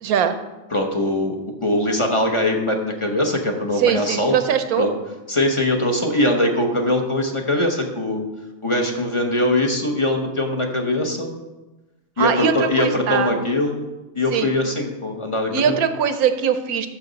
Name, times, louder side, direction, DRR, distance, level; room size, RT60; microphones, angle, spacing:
voice 1, 0.0-0.4 3.8-4.9 12.2-13.3 14.3-14.5 15.5-16.9, right 8 dB, 70° right, 9 dB, 1.1 m, -21 dB
voice 2, 0.7-1.3 1.6-4.4 4.8-4.9 5.3-8.2 8.6-11.3 12.2-13.9 14.1-15.8, left 1 dB, 25° left, 3 dB, 0.8 m, -21 dB
13.0 x 6.4 x 4.0 m, 1.1 s
omnidirectional pair, 1.7 m